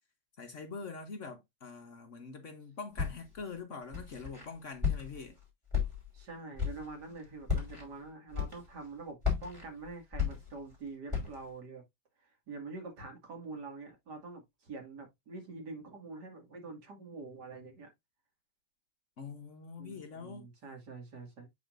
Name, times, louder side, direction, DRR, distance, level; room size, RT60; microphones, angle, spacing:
voice 1, 0.4-5.4 19.2-20.5, left 4 dB, 50° left, 1.4 m, -44 dB
Walk footsteps, 3.0-3.4 3.9-4.4 4.8-5.3 5.7-6.2 6.6-6.9 7.4-7.8 8.3-8.8 9.2-10.7 11.1-11.5, left 7 dB, 15° right, 3.1 m, -33 dB
voice 2, 6.1-11.8 12.2-17.9 19.8-21.5, right 3 dB, 70° right, 2.9 m, -46 dB
8.4 x 5.6 x 2.6 m
omnidirectional pair, 1.8 m